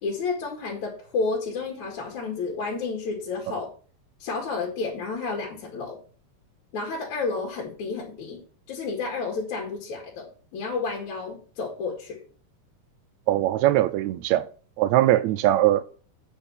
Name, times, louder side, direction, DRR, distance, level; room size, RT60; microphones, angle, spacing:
voice 1, 0.0-3.7 4.2-6.0 6.7-8.4 8.7-12.2, left 4 dB, 60° left, 3.3 m, -31 dB
voice 2, 13.3-14.5 14.8-15.8, right 14 dB, 85° right, 1.6 m, -21 dB
8.9 x 5.6 x 7.2 m
omnidirectional pair, 3.8 m